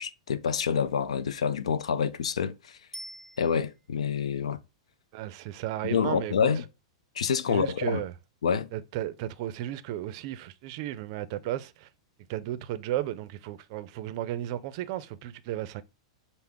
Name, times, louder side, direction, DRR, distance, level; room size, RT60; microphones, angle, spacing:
voice 1, 0.0-2.8 3.4-4.6 5.8-6.7 7.2-8.0 8.4-8.7, left 7 dB, 85° left, 0.4 m, -27 dB
Bicycle bell, 2.9-4.1 13.1-13.2, equal, 5° left, 0.7 m, -45 dB
voice 2, 5.1-6.5 7.5-8.1 8.7-11.9 12.3-15.8, right 13 dB, 50° right, 0.4 m, -34 dB
5.6 x 2.0 x 3.5 m
hypercardioid pair, 120°, 3 cm